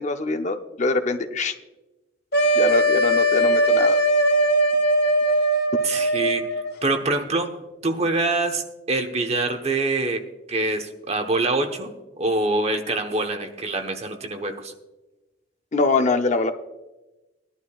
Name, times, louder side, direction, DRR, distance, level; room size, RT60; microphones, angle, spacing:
voice 1, 0.0-1.5 2.6-4.0 15.7-16.5, left 3 dB, 40° left, 7 dB, 0.6 m, -23 dB
sound 1, 2.3-6.7, right 1 dB, 55° left, 1.0 m, -20 dB
voice 2, 5.8-6.5 6.8-7.6 7.8-10.2 10.5-14.7, right 2 dB, 35° right, 5 dB, 1.0 m, -25 dB
19.0 x 11.5 x 2.4 m, 1.1 s
head